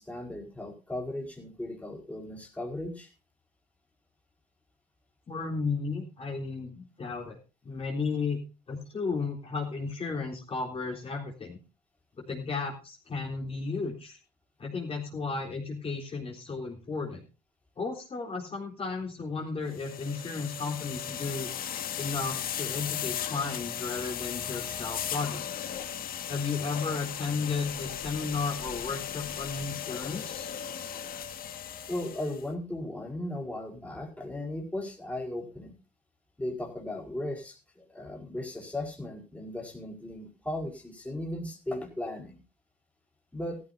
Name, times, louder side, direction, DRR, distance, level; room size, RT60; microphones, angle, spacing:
voice 1, 0.0-3.1 30.9-31.1 31.9-35.7 36.4-42.4 43.3-43.6, left 1 dB, 10° left, 0 dB, 4.6 m, -37 dB
voice 2, 5.3-7.4 7.6-8.4 8.7-11.6 12.2-14.2 14.6-17.2 17.8-21.5 22.0-25.7 26.3-30.5, left 4 dB, 35° left, 0 dB, 3.8 m, -34 dB
sound 1, 19.7-32.4, left 9 dB, 60° left, 1.7 m, -36 dB
16.0 x 14.5 x 2.7 m, 0.30 s
cardioid pair, 110°, 17 cm